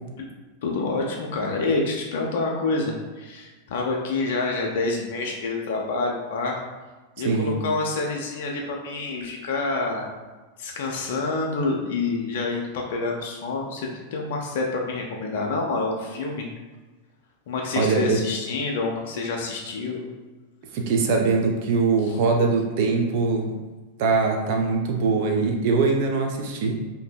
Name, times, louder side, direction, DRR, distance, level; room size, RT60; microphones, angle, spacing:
voice 1, 0.6-6.6 7.2-10.1 10.6-16.5 17.5-20.0 22.0-22.1, left 3 dB, 55° left, 0 dB, 0.4 m, -27 dB
voice 2, 7.2-7.6 17.8-18.2 20.7-23.5 24.0-26.7, right 4 dB, 50° right, 2 dB, 0.4 m, -22 dB
2.6 x 2.6 x 2.2 m, 1.3 s
figure-of-eight pair, 90°, 0 cm